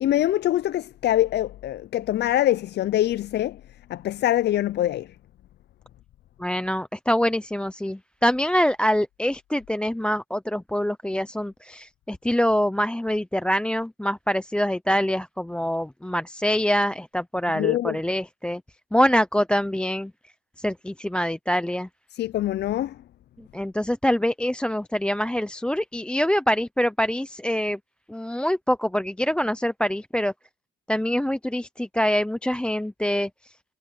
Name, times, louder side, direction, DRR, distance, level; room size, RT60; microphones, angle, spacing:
voice 1, 0.0-3.6 3.9-5.1 17.5-18.0 22.1-23.0, left 13 dB, 60° left, 0.4 m, -24 dB
voice 2, 6.4-18.6 18.9-20.1 20.6-21.9 23.5-27.8 28.1-30.3 30.9-33.5, equal, 5° left, 0.6 m, -25 dB
cardioid pair, 90°, 20 cm